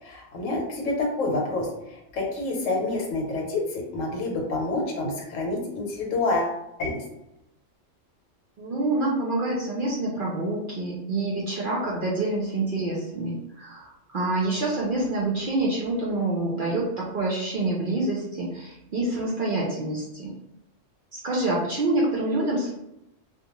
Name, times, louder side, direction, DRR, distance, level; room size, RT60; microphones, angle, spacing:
voice 1, 0.0-7.0, left 2 dB, 80° left, -1 dB, 1.1 m, -28 dB
voice 2, 8.6-20.3 21.1-22.7, right 2 dB, 60° right, -4 dB, 0.6 m, -27 dB
2.3 x 2.2 x 2.9 m, 0.85 s
omnidirectional pair, 1.3 m